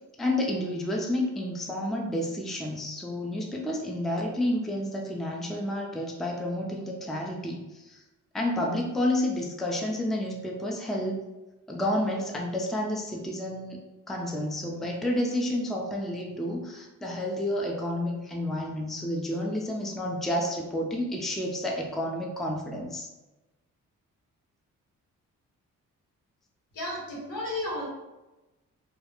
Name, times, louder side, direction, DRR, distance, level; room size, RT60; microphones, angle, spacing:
voice 1, 0.2-8.0 8.3-11.2 11.7-13.8 14.1-23.1, left 1 dB, ahead, 0 dB, 0.4 m, -30 dB
voice 2, 26.7-27.9, left 1 dB, 80° left, -5 dB, 1.3 m, -33 dB
2.3 x 2.0 x 2.9 m, 1.1 s
cardioid pair, 65°, 33 cm